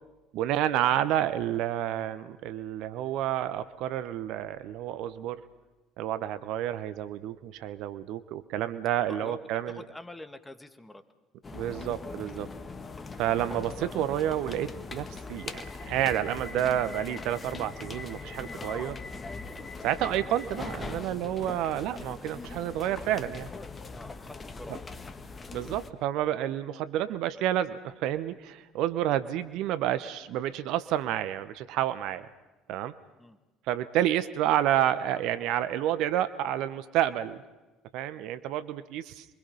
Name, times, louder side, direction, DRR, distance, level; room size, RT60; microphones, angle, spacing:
voice 1, 0.3-5.4 6.0-9.8 11.5-12.5 13.2-19.0 19.8-23.5 25.5-32.3 32.7-32.9 33.7-37.4 37.9-39.3, right 12 dB, 60° right, 14 dB, 0.9 m, -29 dB
voice 2, 9.8-11.0 23.9-24.8 33.2-33.4, left 1 dB, 10° left, 10 dB, 1.9 m, -45 dB
sound 1, 11.4-25.9, left 3 dB, 25° left, 1.6 m, -40 dB
28.0 x 23.5 x 5.5 m, 1.1 s
figure-of-eight pair, 55°, 0 cm